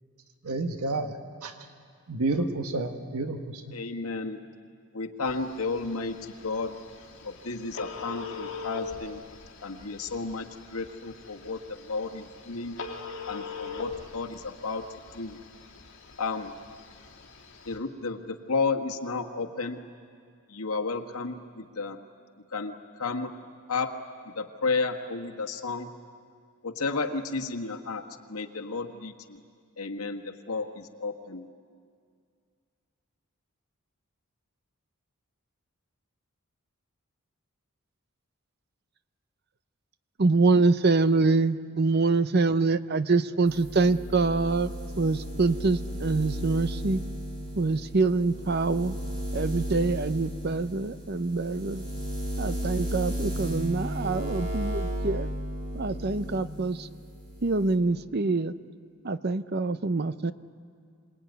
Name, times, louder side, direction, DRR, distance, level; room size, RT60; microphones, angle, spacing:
voice 1, 0.4-1.5 2.1-3.8, right 2 dB, 90° right, 6 dB, 1.4 m, -30 dB
voice 2, 3.7-4.4 4.9-6.2 6.4-6.7 7.2-9.2 9.6-10.5 10.7-12.8 13.3-14.9 15.1-15.4 16.2-16.5 17.7-19.8 20.5-22.0 22.5-22.7 23.0-23.3 23.7-23.9 24.4-25.9 26.6-28.0 28.3-29.1 29.8-31.5, left 4 dB, 90° left, 3 dB, 1.6 m, -32 dB
Telephone, 5.3-17.8, left 4 dB, 60° left, 3.1 m, -42 dB
voice 3, 40.2-44.7 45.0-47.0 47.6-49.0 49.3-51.8 52.4-55.3 55.7-56.9 57.4-58.5 59.0-60.3, right 3 dB, 45° right, 13 dB, 0.7 m, -25 dB
sound 1, 43.5-56.4 56.7-57.8, equal, 20° right, 3.3 m, -34 dB
27.0 x 19.5 x 9.4 m, 2.2 s
head